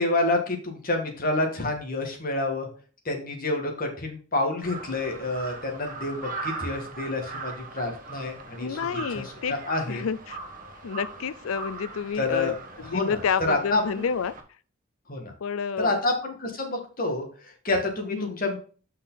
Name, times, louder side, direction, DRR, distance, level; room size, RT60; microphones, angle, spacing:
voice 1, 0.0-2.7 3.1-8.8 9.1-10.1 12.2-12.5 12.8-14.0 15.1-15.3 15.8-18.6, left 2 dB, 45° left, 2.0 m, -28 dB
Crow, 4.6-14.4, right 3 dB, 40° right, 1.3 m, -40 dB
voice 2, 8.6-9.5 9.9-10.4 10.8-14.3 15.4-16.0 18.1-18.4, left 6 dB, 85° left, 0.5 m, -29 dB
6.3 x 5.6 x 3.9 m
head